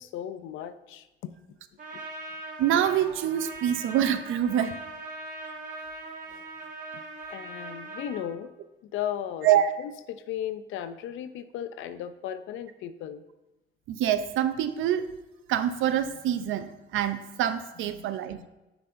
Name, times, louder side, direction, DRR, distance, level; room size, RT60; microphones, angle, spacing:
voice 1, 0.0-1.4 1.9-2.0 6.3-6.4 6.9-7.0 7.3-8.5 8.9-9.5 9.8-13.2 17.9-18.5, left 10 dB, 85° left, 12 dB, 0.4 m, -36 dB
Trumpet, 1.8-8.3, right 2 dB, 40° right, 1.6 m, -40 dB
voice 2, 2.6-4.7 9.4-9.7 13.9-15.0 15.5-18.5, right 10 dB, 85° right, 11 dB, 0.5 m, -25 dB
8.7 x 5.9 x 2.6 m, 1.0 s
cardioid pair, 90°, 20 cm